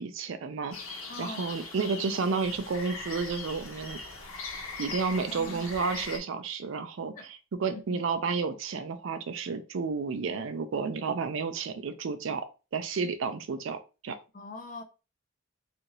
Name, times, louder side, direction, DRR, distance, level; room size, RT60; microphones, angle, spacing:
voice 1, 0.0-4.0 4.8-7.1 7.6-12.5 12.7-13.8 14.0-14.2, right 5 dB, 70° right, 0.4 m, -31 dB
sound 1, 0.7-6.2, left 3 dB, 90° left, 0.8 m, -40 dB
voice 2, 1.1-1.5 5.0-5.7 7.1-7.3 7.9-8.0 14.3-14.8, left 2 dB, 40° left, 0.4 m, -42 dB
2.7 x 2.5 x 3.0 m
head